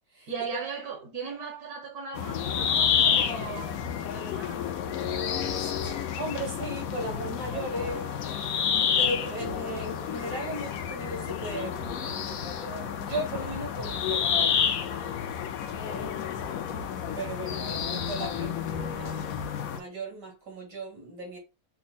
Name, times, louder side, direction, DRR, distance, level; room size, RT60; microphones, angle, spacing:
voice 1, 0.3-4.8, right 5 dB, 65° right, 1.5 m, -38 dB
sound 1, 2.2-19.8, left 8 dB, 70° left, 0.9 m, -30 dB
sound 2, 2.8-3.9 4.2-8.0 8.3-11.9 12.3-14.0 15.7-17.3 17.7-19.6, right 1 dB, 85° left, 1.4 m, -45 dB
voice 2, 5.6-15.0 15.8-16.3 17.2-19.2 19.6-21.4, right 1 dB, 80° right, 2.9 m, -37 dB
5.6 x 2.1 x 4.0 m
omnidirectional pair, 1.8 m